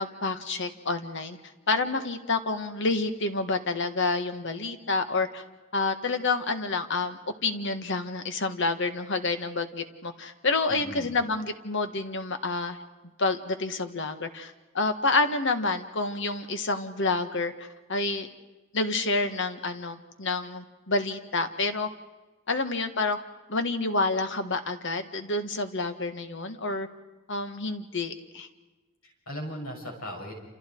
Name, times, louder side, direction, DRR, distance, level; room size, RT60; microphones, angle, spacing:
voice 1, 0.0-1.4 1.7-5.4 5.7-12.8 13.2-18.3 18.7-21.9 22.5-23.2 23.5-26.9 27.3-28.5, left 3 dB, 60° left, 8 dB, 1.7 m, -28 dB
voice 2, 10.7-11.2 29.0-30.3, equal, 85° left, 1 dB, 6.7 m, -38 dB
28.5 x 28.0 x 4.7 m, 1.2 s
head